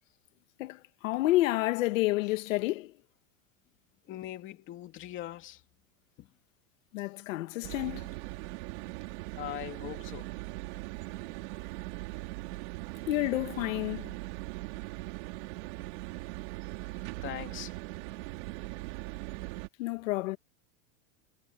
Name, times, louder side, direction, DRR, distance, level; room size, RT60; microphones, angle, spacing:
voice 1, 0.6-2.9 6.9-8.1 13.1-14.1 19.8-20.4, left 17 dB, 70° left, 1.8 m, -29 dB
voice 2, 4.0-5.6 6.2-6.4 9.4-10.4 11.2-11.3 17.0-17.8, left 14 dB, 30° left, 2.8 m, -41 dB
sound 1, 7.6-19.7, right 22 dB, 55° right, 3.8 m, -40 dB
supercardioid pair, 170°, 40 cm